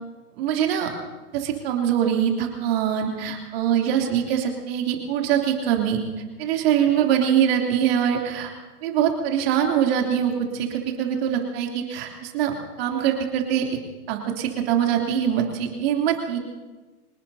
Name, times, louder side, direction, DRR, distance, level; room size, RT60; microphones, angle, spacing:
voice 1, 0.4-0.9 1.3-6.0 6.4-8.5 8.8-13.7 14.1-16.4, right 9 dB, 40° right, 1 dB, 3.0 m, -23 dB
26.0 x 19.5 x 2.8 m, 1.2 s
hypercardioid pair, 140°, 45 cm